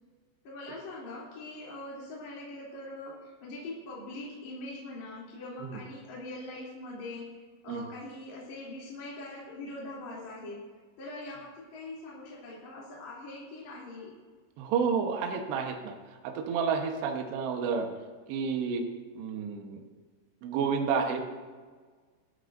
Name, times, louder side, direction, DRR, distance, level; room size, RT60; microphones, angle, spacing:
voice 1, 0.4-10.6 11.0-14.1, left 2 dB, 40° left, -6 dB, 4.1 m, -42 dB
voice 2, 14.6-16.0 16.2-17.9 18.3-18.9 19.2-19.8 20.4-21.2, right 6 dB, 70° right, 3 dB, 3.2 m, -30 dB
23.5 x 13.5 x 2.6 m, 1.5 s
omnidirectional pair, 5.4 m